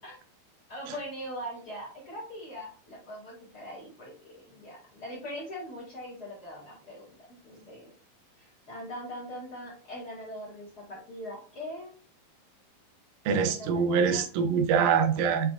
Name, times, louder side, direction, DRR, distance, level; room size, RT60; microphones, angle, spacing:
voice 1, 0.7-7.9 8.4-11.9 13.3-14.2, equal, 75° left, -5 dB, 0.8 m, -41 dB
voice 2, 13.3-15.5, right 6 dB, 75° right, 6 dB, 2.1 m, -24 dB
7.1 x 2.9 x 2.3 m, 0.41 s
omnidirectional pair, 4.0 m